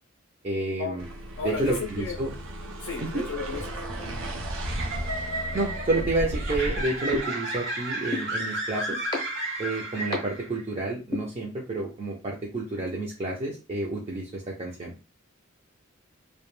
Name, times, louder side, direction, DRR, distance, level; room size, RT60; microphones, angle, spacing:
voice 1, 0.4-1.1 1.4-2.3 3.0-3.3 5.5-9.0 9.6-14.9, right 2 dB, 30° right, -3 dB, 0.4 m, -30 dB
sound 1, 1.0-7.3, right 1 dB, 80° right, 0.5 m, -35 dB
voice 2, 1.4-2.2 2.8-4.1, left 5 dB, 65° left, 1 dB, 0.4 m, -34 dB
sound 2, 3.0-10.6, right 2 dB, 60° right, 0.9 m, -33 dB
sound 3, 7.1-7.2 8.1-8.2 9.1-9.2 10.1-10.2 11.1-11.2, left 3 dB, 20° left, 0.5 m, -27 dB
2.2 x 2.1 x 3.0 m, 0.32 s
head